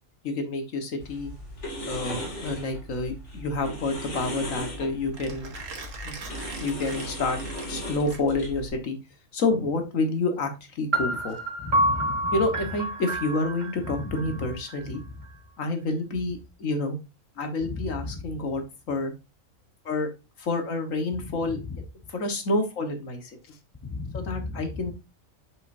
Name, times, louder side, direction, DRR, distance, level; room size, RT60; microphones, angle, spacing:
voice 1, 0.2-1.3 1.9-5.5 6.0-6.2 6.5-7.4 7.7-9.0 9.3-11.4 12.3-15.0 15.6-17.0 17.4-19.1 19.8-20.1 20.4-21.6 22.1-23.4 24.1-24.9, left 2 dB, 85° left, 6 dB, 1.7 m, -28 dB
sound 1, 1.0-8.7, equal, 60° left, 2.6 m, -37 dB
Mechanisms, 2.7-8.6, right 4 dB, 75° right, 1.6 m, -43 dB
sound 2, 10.9-14.8, right 1 dB, 35° right, 1.2 m, -28 dB
voice 2, 11.6-12.4 13.8-14.4 14.9-15.0 17.6-18.1 21.4-21.8 23.8-24.9, left 3 dB, 20° left, 8 dB, 0.7 m, -35 dB
7.7 x 5.5 x 2.6 m, 0.27 s
omnidirectional pair, 1.4 m